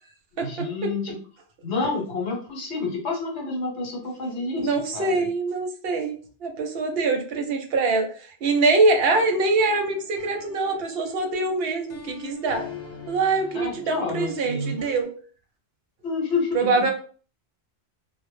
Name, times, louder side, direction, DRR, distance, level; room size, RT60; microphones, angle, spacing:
voice 1, 0.3-1.2 1.6-5.3 13.5-14.7 16.0-16.9, left 3 dB, 75° left, 0 dB, 1.0 m, -29 dB
voice 2, 4.6-12.7 13.1-15.1 16.5-16.9, right 3 dB, 65° right, 4 dB, 0.7 m, -24 dB
sound 1, 9.0-15.0, left 7 dB, 55° left, 0.8 m, -43 dB
2.1 x 2.0 x 3.0 m, 0.41 s
omnidirectional pair, 1.2 m